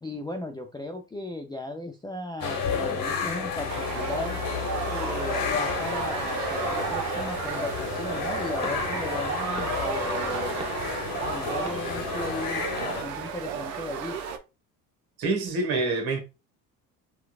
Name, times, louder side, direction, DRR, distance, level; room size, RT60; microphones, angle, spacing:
voice 1, 0.0-4.4 4.9-10.7 11.2-14.2, left 1 dB, 10° left, 0.5 m, -36 dB
sound 1, 2.4-13.0, left 6 dB, 45° left, 1.0 m, -31 dB
sound 2, 3.7-14.4, right 7 dB, 75° right, 0.7 m, -33 dB
sound 3, 8.6-13.8, right 2 dB, 15° right, 0.9 m, -47 dB
voice 2, 15.2-16.2, right 3 dB, 50° right, 1.3 m, -26 dB
4.4 x 2.4 x 2.4 m
hypercardioid pair, 65°, 46 cm